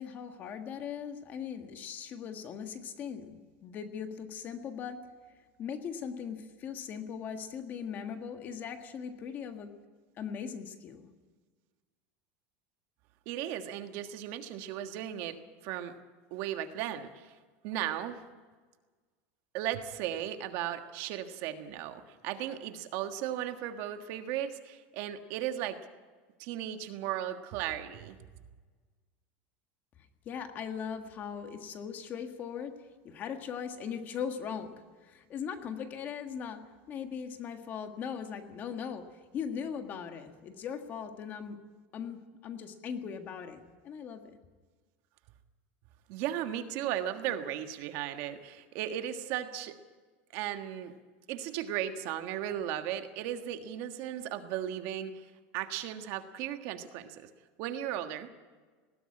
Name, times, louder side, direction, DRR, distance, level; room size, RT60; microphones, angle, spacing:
voice 1, 0.0-5.0 5.6-9.7 10.2-11.1 30.2-32.8 33.0-41.6 41.9-44.4, left 7 dB, 30° left, 6 dB, 1.6 m, -39 dB
voice 2, 13.2-15.4 15.6-15.9 16.3-17.3 17.6-18.2 19.5-25.8 26.4-28.2 46.1-49.8 50.3-50.9 51.3-55.3 55.5-57.3 57.6-58.3, right 11 dB, 50° right, 7 dB, 1.5 m, -36 dB
20.0 x 17.0 x 9.8 m, 1.4 s
supercardioid pair, 170°, 6 cm